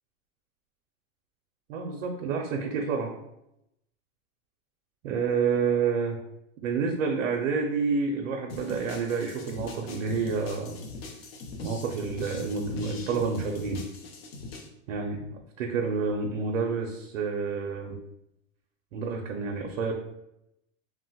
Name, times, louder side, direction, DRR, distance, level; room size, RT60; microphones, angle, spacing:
voice 1, 1.7-3.1 5.0-6.2 6.6-10.8 11.6-13.8 14.9-18.0 18.9-19.9, right 5 dB, 75° right, 2 dB, 0.5 m, -29 dB
sound 1, 8.5-14.7, left 3 dB, 50° left, 0.5 m, -41 dB
3.0 x 2.1 x 2.7 m, 0.84 s
supercardioid pair, 175°, 38 cm